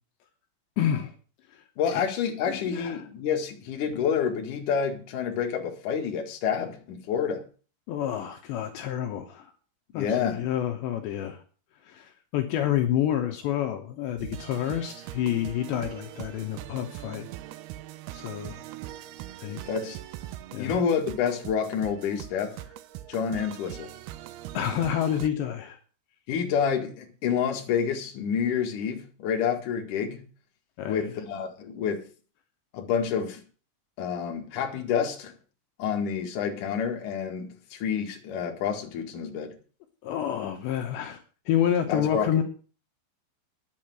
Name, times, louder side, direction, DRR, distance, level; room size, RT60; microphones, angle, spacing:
voice 1, 0.8-1.1 1.5-1.6 1.9-2.0 2.5-3.1 7.9-9.5 9.9-11.4 11.8-17.3 18.1-18.6 19.4-19.6 20.5-20.7 24.5-25.8 30.8-31.1 40.0-42.4, left 10 dB, 75° left, 3.2 m, -29 dB
voice 2, 1.8-7.4 9.9-10.4 19.7-20.0 20.6-22.6 23.1-23.9 26.3-30.2 30.8-32.0 32.7-33.4 34.0-35.3 35.8-39.5 41.9-42.4, left 7 dB, 50° left, 3.0 m, -28 dB
sound 1, 14.2-25.3, right 14 dB, 90° right, 2.2 m, -41 dB
10.5 x 8.5 x 7.8 m
omnidirectional pair, 5.5 m